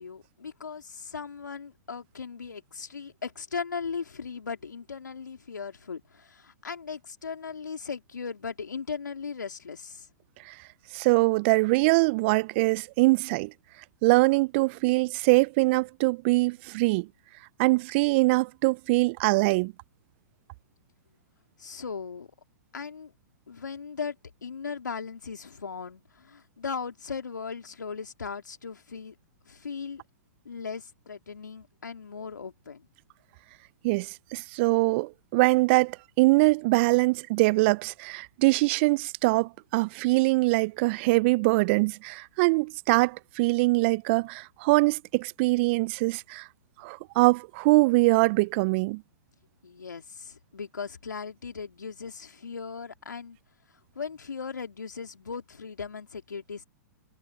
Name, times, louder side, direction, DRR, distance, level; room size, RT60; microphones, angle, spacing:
voice 1, 0.0-10.1 21.6-22.3 22.7-23.1 23.5-24.2 24.4-29.1 29.4-30.0 30.4-32.9 49.6-53.4 53.9-56.6, left 5 dB, 85° left, 3.4 m, -38 dB
voice 2, 10.9-13.5 14.0-17.1 17.6-19.7 33.8-46.5 46.8-49.0, right 24 dB, 40° right, 0.3 m, -23 dB
hypercardioid pair, 120°, 10 cm